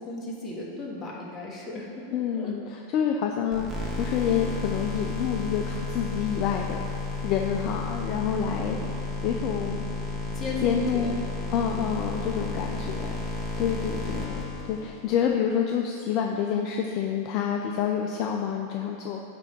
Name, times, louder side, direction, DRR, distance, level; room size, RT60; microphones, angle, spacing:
voice 1, 0.0-2.5 8.6-9.0 10.3-11.3 11.7-11.9, left 2 dB, 25° left, -3 dB, 1.7 m, -35 dB
voice 2, 2.1-6.8 7.2-9.8 10.6-11.2 11.5-13.2 13.6-19.2, left 8 dB, 50° left, 1 dB, 0.5 m, -28 dB
sound 1, 3.5-15.2, left 2 dB, 20° right, 1.4 m, -32 dB
9.1 x 3.5 x 5.4 m, 2.8 s
hypercardioid pair, 100°, 0 cm